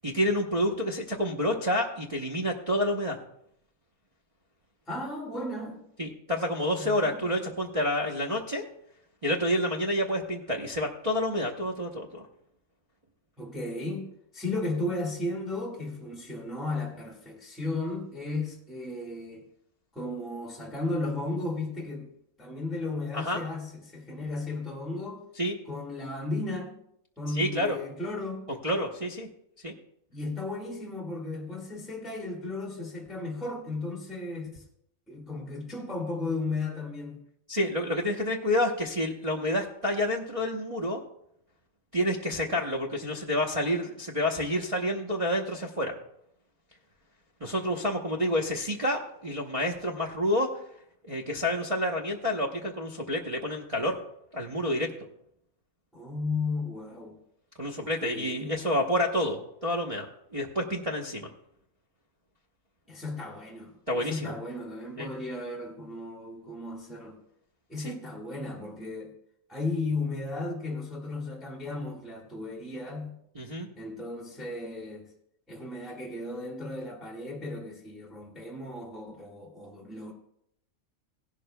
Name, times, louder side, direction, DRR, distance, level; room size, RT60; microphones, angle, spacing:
voice 1, 0.0-3.2 6.0-8.7 9.2-12.3 23.1-23.4 25.4-25.5 27.4-27.8 28.5-29.3 29.6-29.7 37.5-41.0 41.9-45.9 47.4-50.5 51.0-54.0 54.3-54.9 57.6-61.3 63.9-64.3 65.0-65.1 67.8-67.9 73.3-73.7, left 1 dB, 30° right, -3 dB, 0.8 m, -29 dB
voice 2, 4.9-5.9 6.8-7.2 13.4-19.5 19.9-22.1 22.4-25.2 25.6-26.8 27.2-28.5 30.1-34.6 35.1-37.2 55.9-57.2 57.8-58.6 62.9-67.2 67.7-69.1 69.5-73.2 73.8-75.1 75.5-80.1, left 2 dB, ahead, -1 dB, 1.5 m, -35 dB
17.0 x 11.5 x 2.2 m, 0.76 s
omnidirectional pair, 1.4 m